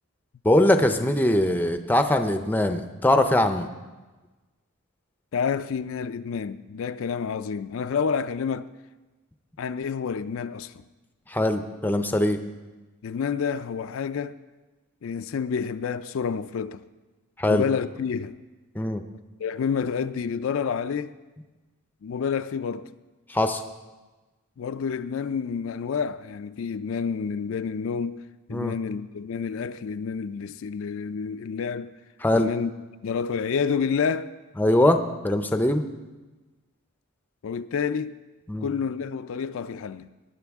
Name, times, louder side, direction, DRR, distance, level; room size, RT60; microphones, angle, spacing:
voice 1, 0.4-3.7 11.3-12.4 17.4-17.7 18.7-19.0 23.3-23.6 28.5-28.7 32.2-32.5 34.6-35.0 35.2-35.8 38.5-38.7, left 1 dB, 10° left, 0.5 m, -21 dB
voice 2, 5.3-8.7 9.6-10.8 13.0-14.4 15.0-16.8 17.5-18.4 19.4-21.1 22.0-22.9 24.6-28.2 28.5-32.0 32.3-32.7 33.0-34.3 37.4-38.2 38.6-40.1, left 6 dB, 65° left, 0.3 m, -29 dB
18.0 x 10.0 x 3.5 m
head